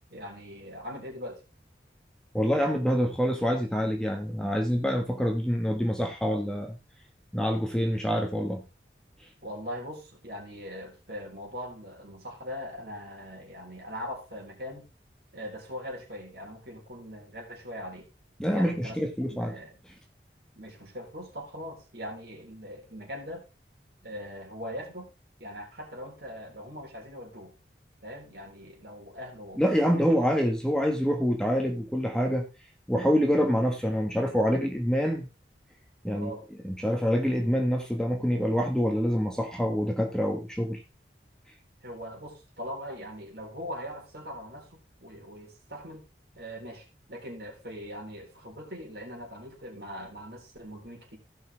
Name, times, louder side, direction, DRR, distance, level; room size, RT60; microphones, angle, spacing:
voice 1, 0.1-1.4 9.4-14.9 15.3-18.1 18.5-19.0 19.3-19.8 20.6-23.5 24.0-25.1 25.4-27.5 28.0-30.1 36.1-36.5 41.8-46.0 46.4-51.2, equal, 65° right, 0 dB, 3.8 m, -41 dB
voice 2, 2.3-6.8 7.3-8.6 18.4-19.6 29.6-32.5 32.9-35.3 36.0-36.3 36.6-40.8, equal, 5° left, 2 dB, 1.3 m, -26 dB
16.0 x 5.6 x 3.4 m, 0.26 s
head